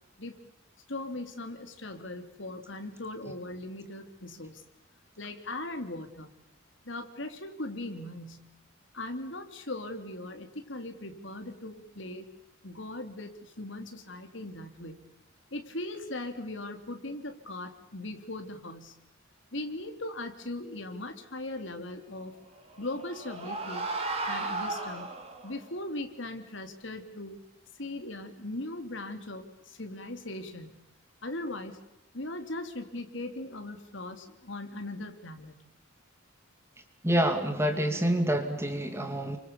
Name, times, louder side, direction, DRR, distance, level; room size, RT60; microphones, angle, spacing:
voice 1, 0.9-4.6 5.2-6.3 6.8-8.5 8.9-12.3 12.6-15.0 15.5-18.9 19.5-22.4 22.8-23.8 24.3-25.1 25.4-27.4 27.8-30.8 31.2-31.8 32.1-35.5, left 2 dB, 65° left, 6 dB, 3.3 m, -39 dB
sound 1, 22.6-25.6, right 3 dB, 30° right, 5.0 m, -35 dB
voice 2, 37.0-39.4, equal, 15° right, 6 dB, 2.5 m, -27 dB
29.5 x 25.5 x 7.2 m, 0.79 s
head